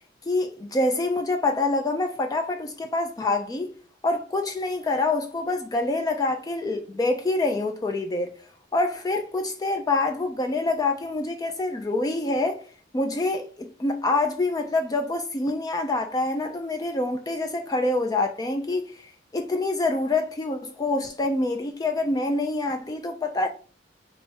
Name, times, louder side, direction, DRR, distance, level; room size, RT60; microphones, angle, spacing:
voice 1, 0.3-3.7 4.0-8.3 8.7-12.6 12.9-23.5, left 2 dB, 20° left, 0.3 m, -26 dB
3.4 x 3.0 x 4.3 m
head